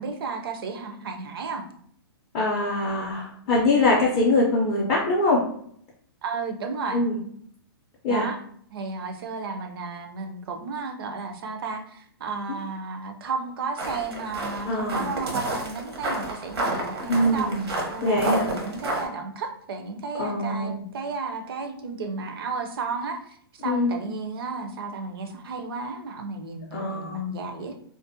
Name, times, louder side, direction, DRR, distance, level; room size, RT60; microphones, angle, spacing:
voice 1, 0.0-1.6 6.2-7.0 8.1-8.4 8.7-17.5 17.9-27.7, right 4 dB, 65° right, 5 dB, 0.5 m, -33 dB
voice 2, 2.3-5.4 6.9-7.2 8.0-8.3 12.5-12.6 14.6-15.1 17.1-17.6 18.0-18.5 20.2-20.8 23.6-24.0 26.7-27.3, left 2 dB, 20° left, -5 dB, 0.4 m, -23 dB
sound 1, 13.8-19.0, right 1 dB, 85° right, 0.9 m, -30 dB
2.5 x 2.0 x 2.5 m, 0.63 s
hypercardioid pair, 155°, 13 cm